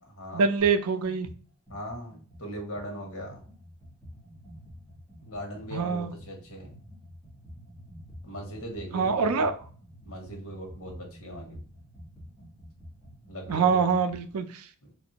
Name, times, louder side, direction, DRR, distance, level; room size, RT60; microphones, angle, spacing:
voice 1, 0.3-1.3 5.7-6.1 8.9-9.6 13.5-14.6, right 5 dB, 75° right, 0.4 m, -25 dB
sound 1, 0.6-0.8 1.0-14.3, equal, 5° right, 1.4 m, -49 dB
voice 2, 1.7-3.4 5.2-6.7 8.2-9.5 10.0-11.6 13.3-13.8 14.8-14.9, equal, 65° left, 1.1 m, -39 dB
3.1 x 2.5 x 2.8 m
head